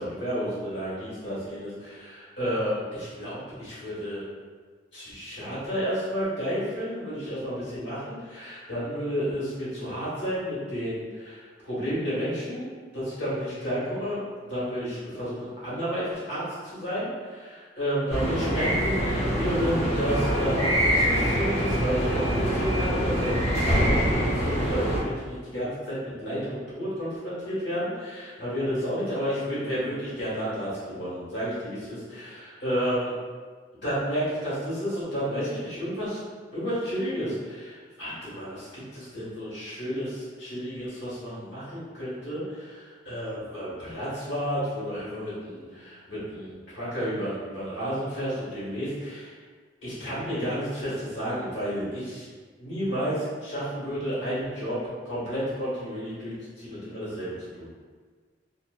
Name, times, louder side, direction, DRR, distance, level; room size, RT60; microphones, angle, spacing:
voice 1, 0.0-4.2 4.9-12.7 12.9-14.2 14.4-16.4 16.7-33.1 33.8-36.2 36.5-49.3 49.8-52.3 52.6-54.8 55.0-57.7, equal, 70° left, -10 dB, 1.3 m, -31 dB
sound 1, 18.1-25.0, equal, 35° left, 0.9 m, -25 dB
2.9 x 2.1 x 2.3 m, 1.5 s
head